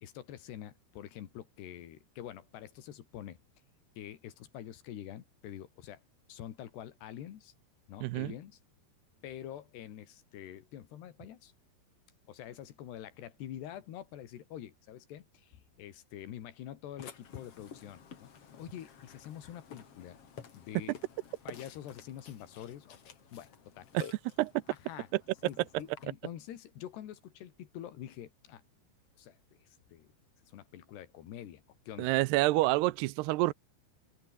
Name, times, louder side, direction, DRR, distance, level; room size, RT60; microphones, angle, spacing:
voice 1, 0.0-3.4 4.0-6.0 6.3-7.5 7.9-8.6 9.2-11.5 12.3-18.3 18.6-20.2 20.5-21.0 21.5-23.9 24.7-25.1 25.4-28.6 29.2-30.1 30.5-32.1, left 11 dB, 70° left, 4.1 m, -46 dB
voice 2, 8.0-8.3 23.9-24.0 24.4-24.5 32.0-33.5, right 19 dB, 80° right, 2.6 m, -27 dB
Burping eructation, 17.0-26.0, left 7 dB, 40° left, 2.7 m, -52 dB
open air
omnidirectional pair, 5.1 m